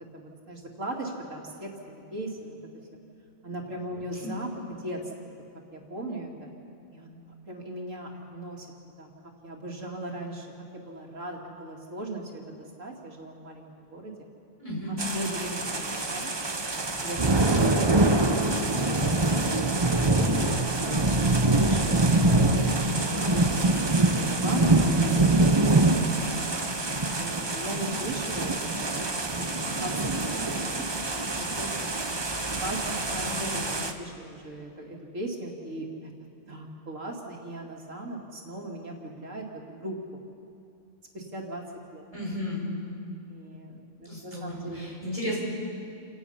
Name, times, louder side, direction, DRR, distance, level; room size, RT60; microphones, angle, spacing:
voice 1, 0.1-2.6 3.4-4.5 4.8-5.0 5.2-5.4 5.7-6.5 6.9-7.2 7.5-8.7 9.0-9.1 9.4-10.5 10.7-14.1 14.9-16.6 17.0-17.8 18.2-22.0 22.3-23.5 24.2-31.0 31.3-31.9 32.5-32.8 33.1-36.1 36.5-40.2 41.1-41.6 41.9-42.1 43.3-44.8, right 1 dB, 90° right, 0 dB, 2.7 m, -38 dB
voice 2, 14.6-15.0 22.1-22.4 32.9-33.4 42.1-42.7 44.0-45.4, left 1 dB, 25° left, -5 dB, 6.1 m, -34 dB
sound 1, 15.0-33.9, right 2 dB, 25° right, 0.9 m, -25 dB
28.5 x 17.5 x 5.7 m, 2.6 s
omnidirectional pair, 1.3 m